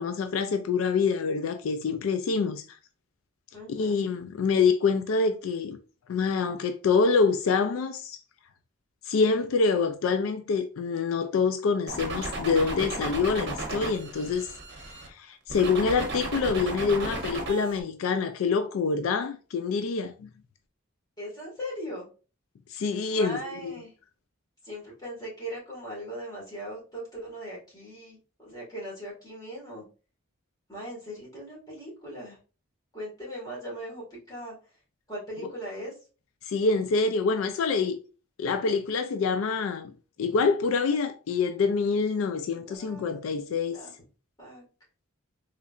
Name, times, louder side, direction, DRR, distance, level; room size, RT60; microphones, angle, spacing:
voice 1, 0.0-2.8 3.7-5.8 6.1-8.2 9.1-14.5 14.9-20.3 22.7-23.7 36.5-38.0 38.4-39.9 40.2-43.8, left 4 dB, 75° left, 0.3 m, -26 dB
voice 2, 3.5-4.0 21.2-22.0 23.1-23.9 24.6-29.8 30.7-32.4 32.9-34.6 35.1-35.9 42.5-43.2 43.7-43.9 44.4-44.6, equal, 20° left, 1.8 m, -39 dB
sound 1, 11.9-15.1 15.5-17.8, right 2 dB, 55° right, 0.8 m, -34 dB
3.7 x 3.1 x 2.4 m
head